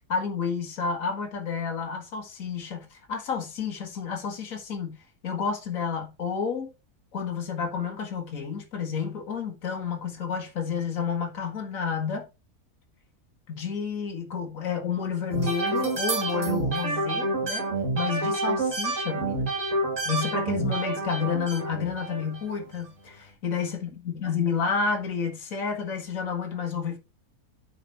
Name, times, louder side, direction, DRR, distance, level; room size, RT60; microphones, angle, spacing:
voice 1, 0.1-5.0 5.2-6.7 7.1-12.3 13.5-19.5 20.0-27.0, left 6 dB, 55° left, 1.9 m, -30 dB
sound 1, 15.3-22.6, right 3 dB, 50° right, 2.8 m, -28 dB
8.8 x 5.1 x 4.2 m
omnidirectional pair, 1.7 m